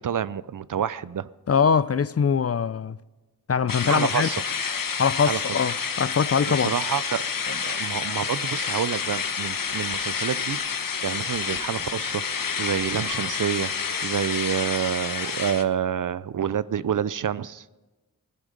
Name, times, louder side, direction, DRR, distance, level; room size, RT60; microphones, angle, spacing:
voice 1, 0.0-1.3 3.8-4.4 5.2-5.4 6.5-10.6 11.0-12.2 12.6-13.7 14.0-17.7, right 8 dB, 60° right, 0.5 m, -28 dB
voice 2, 1.5-3.0 3.5-4.3 5.0-6.7, left 6 dB, 40° left, 0.5 m, -22 dB
sound 1, 3.7-15.6, left 6 dB, 65° left, 0.9 m, -29 dB
15.5 x 10.5 x 5.1 m
cardioid pair, 40°, 36 cm